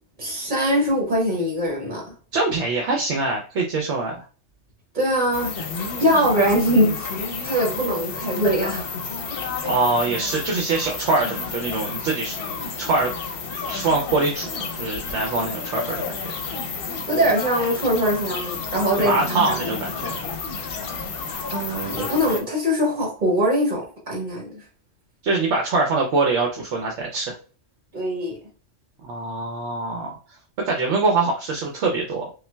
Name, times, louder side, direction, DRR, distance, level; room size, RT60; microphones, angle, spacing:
voice 1, 0.2-2.1 4.9-5.5 6.0-7.1 7.4-8.9 9.3-9.4 17.1-19.7 21.5-24.6 27.9-28.4, equal, 40° right, -2 dB, 1.5 m, -22 dB
voice 2, 2.3-4.2 9.6-12.4 12.8-13.1 13.7-14.5 14.8-16.2 19.0-20.3 25.2-27.3 29.0-30.2 30.7-32.3, right 3 dB, 70° right, 1 dB, 0.9 m, -23 dB
sound 1, 5.3-22.4, left 4 dB, 60° left, 0.7 m, -31 dB
5.5 x 2.2 x 2.2 m, 0.37 s
omnidirectional pair, 1.3 m